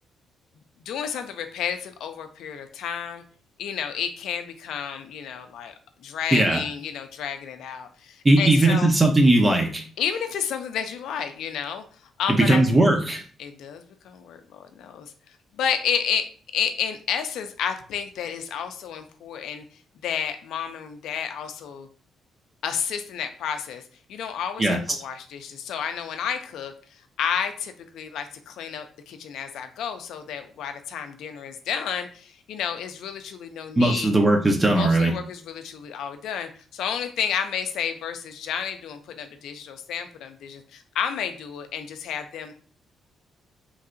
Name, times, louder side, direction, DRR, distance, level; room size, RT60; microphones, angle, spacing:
voice 1, 0.9-3.2 3.6-5.7 6.0-8.9 10.0-11.8 12.2-12.6 13.4-15.1 15.5-16.2 16.5-19.6 20.0-21.9 22.6-23.8 24.1-34.1 34.7-42.5, left 8 dB, 80° left, 7 dB, 0.4 m, -31 dB
voice 2, 6.3-6.6 8.2-9.8 12.4-13.2 24.6-24.8 33.8-35.1, right 2 dB, 25° right, 2 dB, 0.5 m, -18 dB
3.1 x 2.7 x 2.5 m, 0.43 s
cardioid pair, 90°, 0 cm